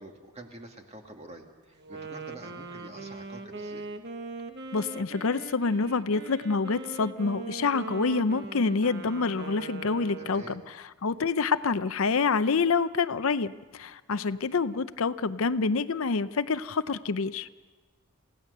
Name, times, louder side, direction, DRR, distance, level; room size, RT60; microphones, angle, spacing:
voice 1, 0.0-3.9 10.2-10.6, right 1 dB, 30° right, 3 dB, 2.0 m, -47 dB
Wind instrument woodwind instrument, 1.8-10.7, right 3 dB, 50° right, 1.2 m, -41 dB
voice 2, 4.7-17.5, left 4 dB, 70° left, 13 dB, 0.6 m, -27 dB
27.5 x 17.0 x 6.7 m, 1.3 s
head